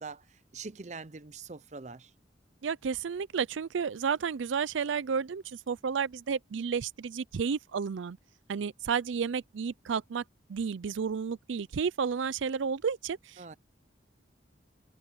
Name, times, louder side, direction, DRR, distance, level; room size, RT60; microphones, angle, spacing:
voice 1, 0.0-2.1 13.4-13.5, right 4 dB, 40° right, 0.6 m, -43 dB
voice 2, 2.6-8.2 8.5-10.2 10.5-13.5, right 6 dB, 90° right, 0.4 m, -32 dB
head